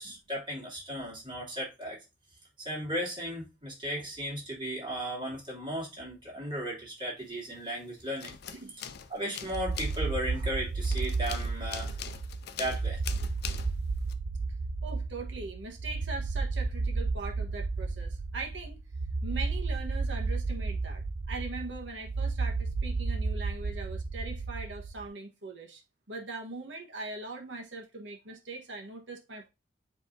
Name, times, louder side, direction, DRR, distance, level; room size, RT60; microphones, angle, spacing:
voice 1, 0.0-2.0 2.6-8.3 9.1-12.1 12.6-13.0, equal, 30° right, 3.0 m, -36 dB
sound 1, 7.3-14.1, left 8 dB, 60° left, 0.5 m, -43 dB
sound 2, 9.5-25.1, right 3 dB, 50° right, 0.5 m, -32 dB
voice 2, 14.8-18.8 19.2-25.8 26.1-29.5, right 3 dB, 80° right, 1.4 m, -41 dB
10.0 x 3.5 x 2.7 m
head